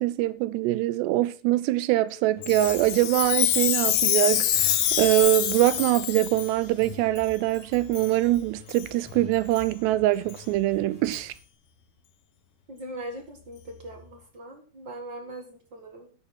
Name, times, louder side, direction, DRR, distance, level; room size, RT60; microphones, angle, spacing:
voice 1, 0.0-11.3, right 16 dB, 85° right, 2.8 m, -23 dB
sound 1, 2.3-11.4, left 5 dB, 5° left, 2.7 m, -48 dB
Chime, 2.4-6.5 7.2-7.3 7.9-8.1 8.7-8.9 9.5-9.6 10.3-10.4 11.1-11.2, left 11 dB, 85° left, 1.6 m, -26 dB
voice 2, 12.7-16.1, right 1 dB, 45° right, 1.5 m, -40 dB
11.5 x 9.7 x 4.3 m
omnidirectional pair, 4.8 m